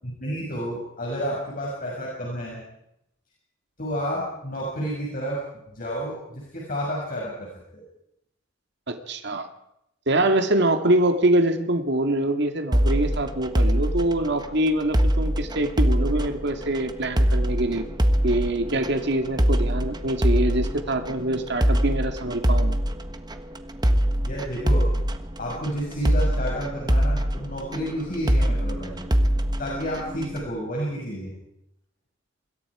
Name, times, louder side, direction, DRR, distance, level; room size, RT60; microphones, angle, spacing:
voice 1, 0.0-2.6 3.8-5.4 5.7-7.8 24.2-24.9 25.4-29.0 29.6-31.3, equal, 45° left, -4 dB, 6.7 m, -30 dB
voice 2, 8.9-9.5 10.1-17.8 18.2-22.8, right 1 dB, 60° right, 6 dB, 2.2 m, -24 dB
sound 1, 12.7-30.5, equal, 20° right, 1.4 m, -24 dB
26.5 x 22.0 x 5.0 m, 0.80 s
head